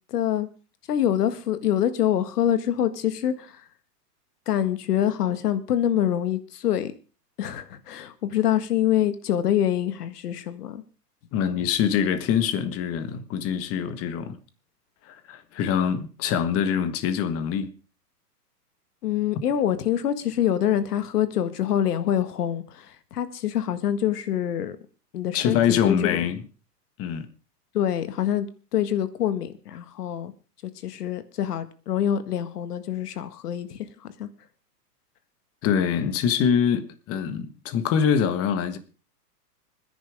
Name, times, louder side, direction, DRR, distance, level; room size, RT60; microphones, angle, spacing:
voice 1, 0.1-0.5 0.9-3.6 4.5-6.9 7.4-10.8 19.0-24.8 25.1-26.2 27.7-28.5 28.7-30.3 30.8-33.9 34.2-34.3, left 10 dB, 70° left, 1.8 m, -25 dB
voice 2, 11.3-14.4 15.0-17.7 25.3-26.4 27.0-27.3 35.6-38.8, left 8 dB, 30° left, 1.5 m, -24 dB
26.0 x 10.5 x 3.5 m
hypercardioid pair, 135°, 48 cm